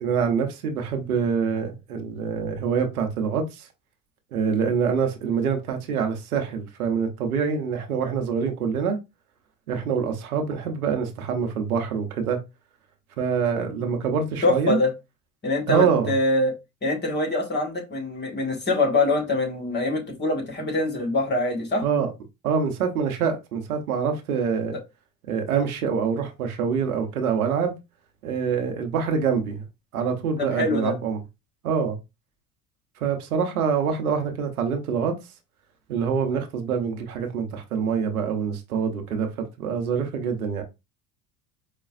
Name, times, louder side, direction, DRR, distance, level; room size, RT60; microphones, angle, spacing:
voice 1, 0.0-3.7 4.3-9.0 9.7-12.4 13.2-14.8 15.7-16.1 21.8-22.1 22.4-24.8 25.3-27.8 28.2-29.6 29.9-31.2 31.6-32.0 33.0-35.2 35.9-40.6, right 6 dB, 80° right, 0.9 m, -25 dB
voice 2, 14.4-14.9 15.4-16.5 16.8-21.8 30.4-30.9, left 2 dB, 25° left, 1.6 m, -24 dB
5.0 x 2.3 x 2.4 m
hypercardioid pair, 70°, 43 cm